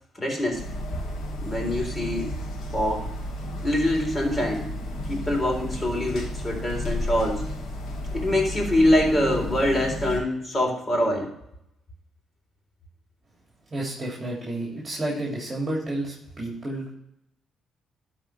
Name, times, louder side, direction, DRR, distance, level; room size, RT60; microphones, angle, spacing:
voice 1, 0.2-0.6 1.4-2.3 2.7-3.1 3.6-7.4 8.1-11.3, left 1 dB, 25° left, 0 dB, 4.0 m, -24 dB
sound 1, 0.5-10.2, left 1 dB, 75° left, 2.3 m, -32 dB
voice 2, 13.7-16.9, right 1 dB, 25° right, -3 dB, 3.1 m, -31 dB
12.5 x 4.5 x 5.8 m, 0.79 s
cardioid pair, 90°, 0 cm